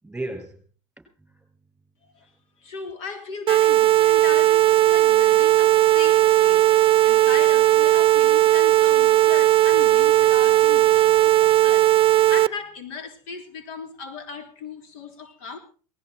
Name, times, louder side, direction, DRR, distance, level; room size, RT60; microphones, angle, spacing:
voice 1, 0.0-0.6 1.0-1.5 2.2-2.3 10.2-10.3 11.0-11.7, right 2 dB, 5° right, 6.9 m, -38 dB
voice 2, 2.0-2.3 2.6-15.6, left 5 dB, 75° left, 3.5 m, -37 dB
sound 1, 3.5-12.5, right 14 dB, 35° right, 0.7 m, -17 dB
Engine / Drill, 5.1-11.1, left 1 dB, 90° left, 5.2 m, -46 dB
19.5 x 14.5 x 4.6 m
supercardioid pair, 115°, 17 cm